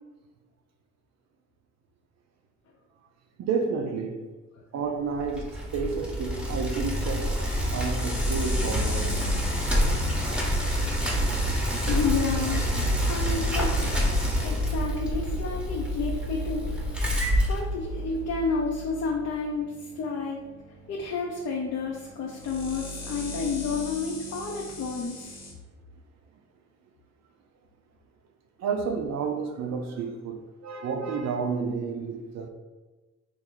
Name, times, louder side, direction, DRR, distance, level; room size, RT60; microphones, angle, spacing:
voice 1, 3.4-4.3 4.7-9.2 28.6-32.5, right 5 dB, 60° right, 0.5 m, -31 dB
Bicycle, 5.2-18.3, equal, 5° right, 0.8 m, -27 dB
sound 1, 6.2-25.5, equal, 85° left, 1.1 m, -38 dB
voice 2, 11.8-12.7 13.1-13.7 14.4-16.8 17.5-20.4 20.9-25.4, left 4 dB, 55° left, 0.6 m, -30 dB
3.0 x 2.5 x 3.8 m
cardioid pair, 90°, 30 cm